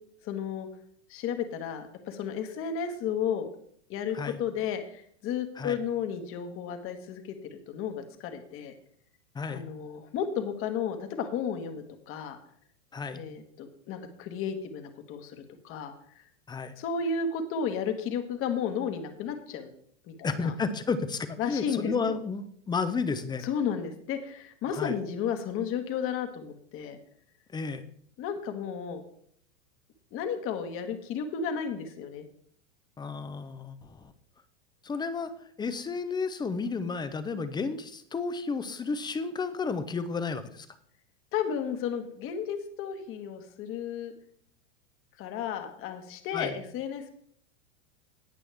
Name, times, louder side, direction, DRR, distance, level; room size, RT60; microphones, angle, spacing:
voice 1, 0.2-0.7 1.1-3.5 3.9-7.4 7.7-8.7 9.5-12.4 13.1-15.9 16.8-19.7 20.1-20.5 21.4-22.2 23.4-27.0 28.2-29.0 30.1-32.2 41.3-44.1 45.2-47.1, left 7 dB, 35° left, 7 dB, 1.6 m, -33 dB
voice 2, 20.2-23.4 24.7-25.0 27.5-27.8 33.0-34.1 34.8-35.3 35.6-40.7 46.3-46.6, left 4 dB, 10° left, 12 dB, 0.7 m, -32 dB
18.5 x 6.2 x 3.5 m, 0.64 s
hypercardioid pair, 125°, 35 cm